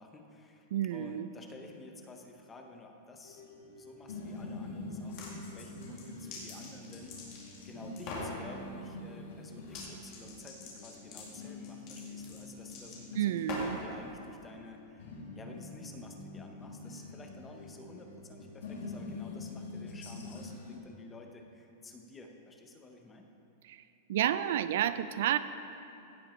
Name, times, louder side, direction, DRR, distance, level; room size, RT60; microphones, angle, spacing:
voice 1, 0.0-7.1 7.6-23.3, left 2 dB, 10° left, 3 dB, 0.7 m, -51 dB
voice 2, 0.7-1.3 13.2-13.8 23.6-23.8 24.1-25.4, right 11 dB, 60° right, 13 dB, 0.3 m, -30 dB
sound 1, 3.2-20.8, left 2 dB, 80° left, 2.0 m, -45 dB
sound 2, 4.9-5.3 5.8-7.6 8.0-8.3 9.6-9.9 10.1-13.9, left 3 dB, 35° left, 2.2 m, -43 dB
16.0 x 5.9 x 4.2 m, 2.8 s
supercardioid pair, 170°, 0 cm